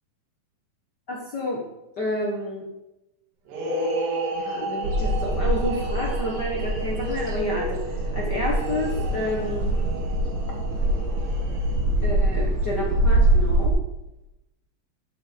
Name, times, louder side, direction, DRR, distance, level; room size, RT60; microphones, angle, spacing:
voice 1, 1.1-1.6 2.0-2.6 4.3-9.7 12.0-13.8, left 1 dB, 60° left, -2 dB, 1.1 m, -30 dB
sound 1, 3.5-12.0, right 1 dB, 80° right, 3.4 m, -33 dB
sound 2, 4.8-13.7, right 1 dB, 65° right, 2.5 m, -24 dB
12.5 x 5.7 x 5.0 m, 0.93 s
omnidirectional pair, 4.0 m